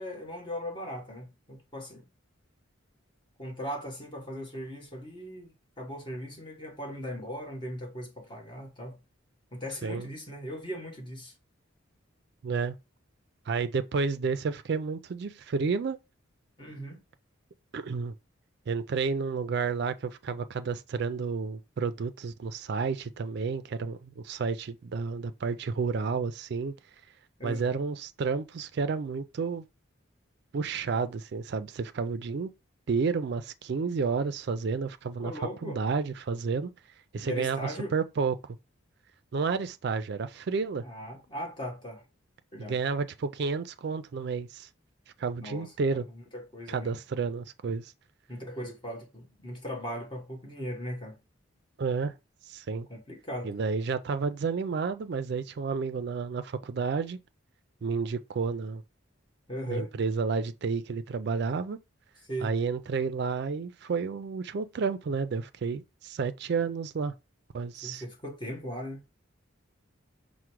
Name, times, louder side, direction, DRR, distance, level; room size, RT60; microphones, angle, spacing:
voice 1, 0.0-2.0 3.4-9.0 9.5-11.3 16.6-17.0 27.4-27.8 35.2-35.8 37.2-37.9 40.8-42.0 42.5-42.8 45.4-46.9 48.3-51.2 52.9-53.5 59.5-59.9 62.3-62.5 67.8-69.0, equal, 20° left, 1.1 m, -38 dB
voice 2, 12.4-12.8 13.5-16.0 17.7-18.2 18.7-26.7 27.4-29.6 30.5-32.5 32.9-35.3 35.6-36.7 37.1-38.4 39.3-40.8 42.6-44.7 45.2-46.1 46.7-47.9 51.8-52.1 52.5-52.9 53.4-57.2 57.8-58.8 59.7-61.8 62.4-67.1 67.5-68.0, right 5 dB, 50° right, 0.3 m, -31 dB
4.8 x 2.1 x 4.5 m
head